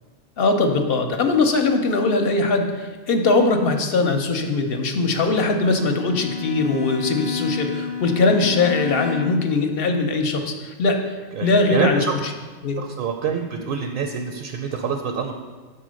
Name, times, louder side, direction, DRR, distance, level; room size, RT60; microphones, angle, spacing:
voice 1, 0.4-11.0 11.4-12.0 12.6-12.8, left 3 dB, 60° left, 5 dB, 0.9 m, -21 dB
Bowed string instrument, 5.6-9.6, left 6 dB, 30° left, 0.4 m, -30 dB
voice 2, 11.3-12.1 12.8-15.3, right 6 dB, 60° right, 4 dB, 0.7 m, -26 dB
6.6 x 4.3 x 6.3 m, 1.4 s
omnidirectional pair, 1.2 m